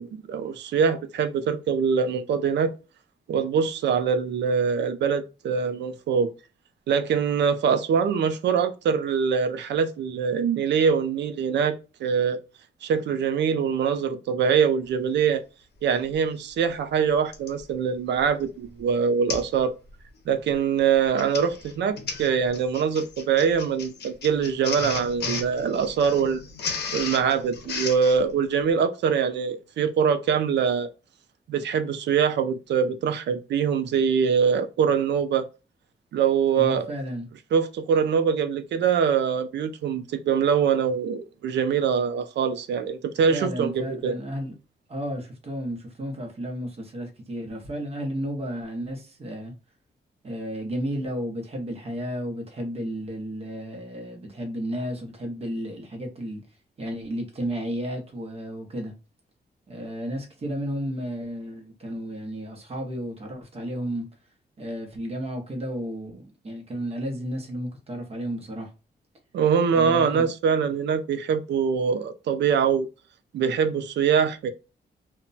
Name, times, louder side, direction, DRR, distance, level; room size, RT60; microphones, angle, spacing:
voice 1, 0.0-2.7 3.3-6.3 6.9-12.4 12.8-15.4 15.8-19.7 20.3-26.4 26.9-30.9 31.5-35.5 36.1-36.9 37.5-44.1 69.3-72.9 73.3-74.5, right 6 dB, 90° right, 0.4 m, -23 dB
Printer, 16.1-16.2 17.3-17.6 18.2-18.4 18.7-18.8 19.3-19.6 19.9-20.2 20.9-28.2, left 4 dB, 65° left, 0.6 m, -34 dB
voice 2, 36.6-37.3 43.3-44.5 44.9-49.5 50.2-56.4 56.8-58.9 59.7-64.0 64.6-68.7 69.7-70.3, equal, 35° right, 0.7 m, -33 dB
2.1 x 2.1 x 3.8 m
wide cardioid pair, 165°, 18 cm